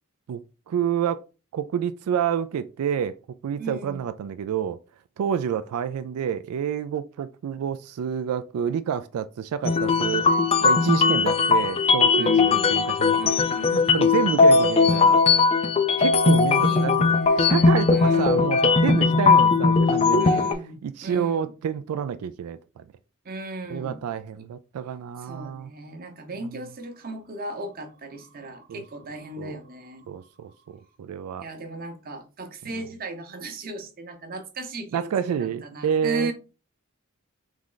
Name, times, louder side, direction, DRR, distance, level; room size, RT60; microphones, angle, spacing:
voice 1, 0.3-1.2 1.5-4.8 5.2-10.3 10.6-13.3 13.7-15.2 16.0-20.4 20.8-22.8 23.7-25.7 26.4-26.6 28.7-28.8 29.4-29.6 30.1-31.4 32.7-32.8 34.9-36.3, right 8 dB, 85° right, 0.3 m, -28 dB
voice 2, 3.6-4.0 12.2-12.7 13.2-14.0 16.4-18.5 20.2-21.5 23.2-24.0 25.2-30.1 31.4-36.3, right 2 dB, 40° right, 0.8 m, -37 dB
sound 1, 9.6-20.5, left 4 dB, 25° left, 0.4 m, -19 dB
3.6 x 3.1 x 3.8 m
head